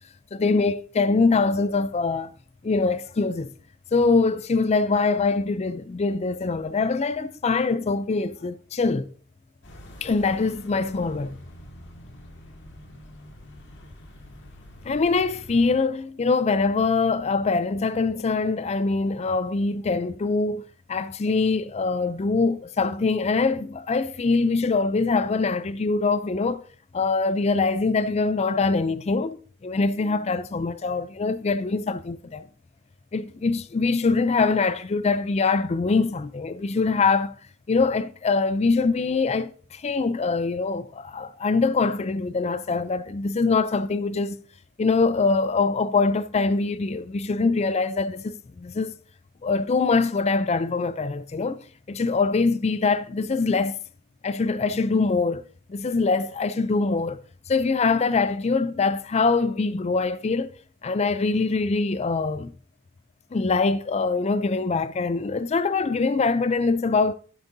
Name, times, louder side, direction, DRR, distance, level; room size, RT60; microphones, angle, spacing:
voice 1, 0.3-2.3 2.6-3.5 3.9-9.1 10.0-11.4 14.8-26.6 26.9-29.4 29.6-32.4 33.1-37.3 37.7-44.4 44.8-48.9 49.4-51.6 51.9-53.8 54.2-55.4 55.7-57.2 57.5-60.5 60.8-62.5 63.3-67.1, left 4 dB, 30° left, 0.4 m, -23 dB
sound 1, 9.6-15.8, left 1 dB, 55° left, 1.9 m, -46 dB
12.0 x 8.2 x 2.7 m
head